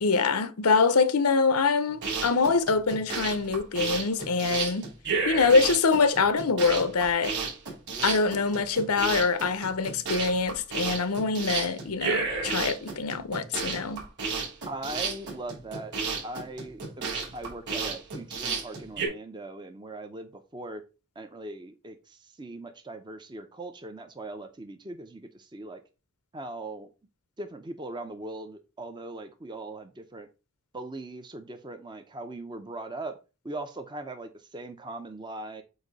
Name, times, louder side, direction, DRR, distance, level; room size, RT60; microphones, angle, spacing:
voice 1, 0.0-4.9 5.3-7.3 8.0-14.0, left 4 dB, 90° left, 0.8 m, -24 dB
sound 1, 1.9-19.1, right 4 dB, 55° right, 3.2 m, -32 dB
voice 2, 14.7-15.9 16.2-20.8 21.2-25.8 26.3-26.9 27.4-30.3 30.7-33.1 33.4-35.6, right 2 dB, 20° right, 0.6 m, -40 dB
8.0 x 2.7 x 5.2 m
head